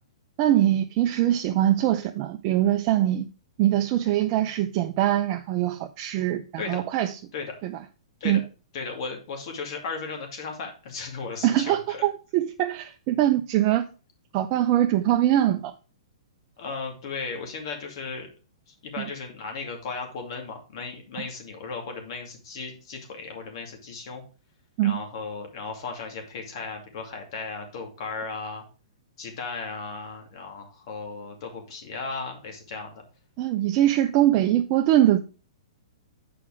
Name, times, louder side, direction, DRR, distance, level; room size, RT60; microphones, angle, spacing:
voice 1, 0.4-3.3 3.6-7.2 7.6-7.8 8.2-8.4 11.4-13.8 14.3-15.7 19.0-19.1 24.8-25.0 33.4-35.2, right 12 dB, 35° right, 0.5 m, -22 dB
voice 2, 8.7-12.0 16.6-18.3 18.8-24.2 24.8-28.6 29.2-33.0, left 4 dB, 55° left, 2.5 m, -36 dB
7.1 x 5.0 x 4.9 m
hypercardioid pair, 140°, 3 cm